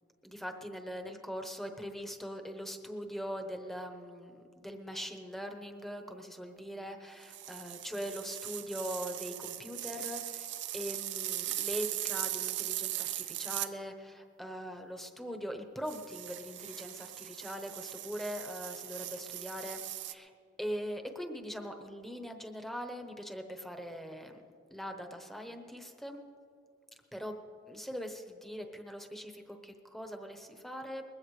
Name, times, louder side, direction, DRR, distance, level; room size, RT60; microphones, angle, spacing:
voice 1, 0.2-10.5 10.7-20.3 20.6-24.4 24.7-26.2 27.1-27.4 27.7-31.0, equal, ahead, 4 dB, 1.0 m, -41 dB
sound 1, 7.2-13.7 15.9-20.1, right 14 dB, 65° right, 0.5 m, -39 dB
21.0 x 15.5 x 3.3 m, 2.3 s
head